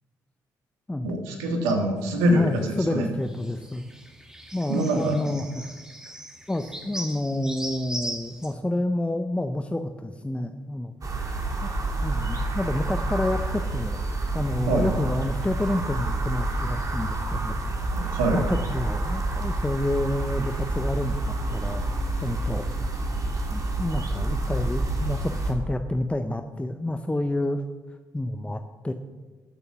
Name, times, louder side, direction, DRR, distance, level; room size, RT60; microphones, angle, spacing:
voice 1, 1.0-3.1 4.7-5.2 14.7-14.9 17.9-18.4, right 1 dB, 80° right, 3 dB, 1.7 m, -24 dB
sound 1, 2.0-8.5, right 1 dB, 5° right, 1.6 m, -39 dB
voice 2, 2.3-3.9 4.5-5.8 6.1-6.2 6.5-10.9 11.6-11.7 12.0-14.0 14.3-17.6 18.0-21.9 22.2-22.7 23.5-27.6 28.1-28.9, left 1 dB, 15° left, 7 dB, 0.8 m, -29 dB
sound 2, 11.0-25.5, right 2 dB, 40° right, 2.8 m, -28 dB
sound 3, 13.0-23.1, left 2 dB, 80° left, 2.2 m, -41 dB
13.5 x 6.9 x 5.9 m, 1.3 s
hypercardioid pair, 45°, 9 cm